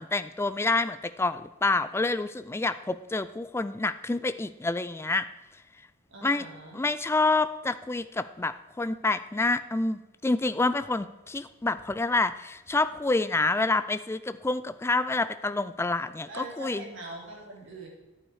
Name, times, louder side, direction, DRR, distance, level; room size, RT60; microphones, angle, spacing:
voice 1, 0.0-5.3 6.2-6.5 6.7-16.8, left 3 dB, 10° left, 13 dB, 0.3 m, -28 dB
voice 2, 6.1-6.8 16.3-17.9, right 2 dB, 60° right, -3 dB, 3.5 m, -42 dB
11.0 x 8.8 x 4.9 m, 1.1 s
head